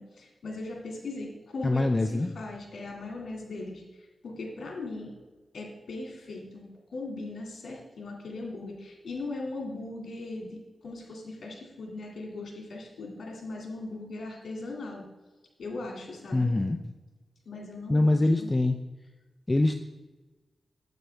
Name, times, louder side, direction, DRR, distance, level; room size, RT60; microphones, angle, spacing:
voice 1, 0.0-5.2 5.5-15.1 15.6-16.5 17.5-18.5, left 2 dB, 80° left, 0 dB, 2.2 m, -39 dB
voice 2, 1.6-2.3 16.3-16.8 17.9-18.8 19.5-19.8, left 2 dB, 25° left, 6 dB, 0.5 m, -24 dB
9.2 x 8.2 x 3.4 m, 1.2 s
cardioid pair, 55°, 0 cm